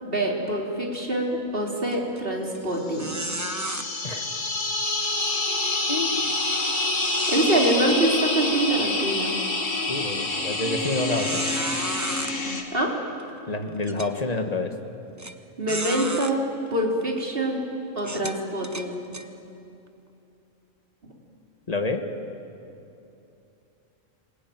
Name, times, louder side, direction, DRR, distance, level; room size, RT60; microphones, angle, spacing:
voice 1, 0.0-3.2 7.3-9.3 12.7-12.9 15.6-16.4 16.7-17.6 18.0-19.0, right 1 dB, 45° right, -1 dB, 3.9 m, -25 dB
sound 1, 1.9-2.2 2.5-2.6 3.0-3.8 6.2-8.5 9.0-9.2 9.8-9.9 10.9-12.3 13.2-13.3 13.8-14.1 15.2-15.3 15.7-16.3 17.0-17.2 18.0-19.3, right 2 dB, 15° right, 0.9 m, -34 dB
sound 2, 2.9-12.6, left 2 dB, 70° left, 2.5 m, -27 dB
voice 2, 5.9-6.3 9.9-11.5 13.5-14.8 21.7-22.1, left 2 dB, 30° left, 5 dB, 1.9 m, -28 dB
26.0 x 20.5 x 9.5 m, 2.8 s
omnidirectional pair, 1.4 m